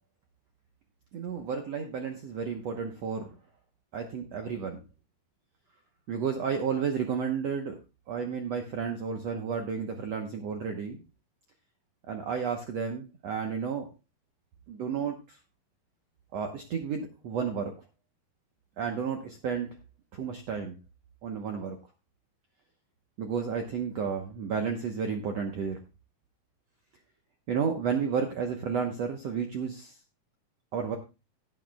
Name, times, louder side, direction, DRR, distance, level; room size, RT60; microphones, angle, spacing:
voice 1, 1.1-3.3 3.9-4.8 6.1-7.8 8.1-11.0 12.0-13.9 14.7-15.4 16.3-17.7 18.8-19.8 20.1-20.8 21.2-21.8 23.2-25.8 27.5-30.0 30.7-31.0, right 6 dB, 75° right, 4 dB, 1.5 m, -32 dB
16.5 x 9.2 x 2.3 m, 0.27 s
omnidirectional pair, 4.4 m